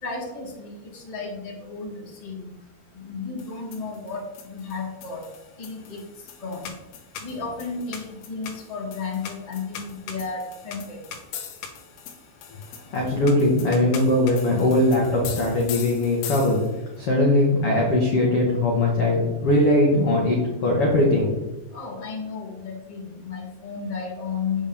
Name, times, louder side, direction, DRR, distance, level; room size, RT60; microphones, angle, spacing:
voice 1, 0.0-2.5 2.9-5.2 5.6-6.0 6.4-6.7 7.2-11.0 21.7-24.7, left 4 dB, 15° left, -4 dB, 1.2 m, -33 dB
sound 1, 3.4-16.9, left 8 dB, 80° left, 3.3 m, -40 dB
voice 2, 12.9-16.6 17.0-21.3, left 1 dB, 65° left, -3 dB, 1.4 m, -20 dB
8.3 x 8.2 x 3.6 m, 1.0 s
omnidirectional pair, 5.2 m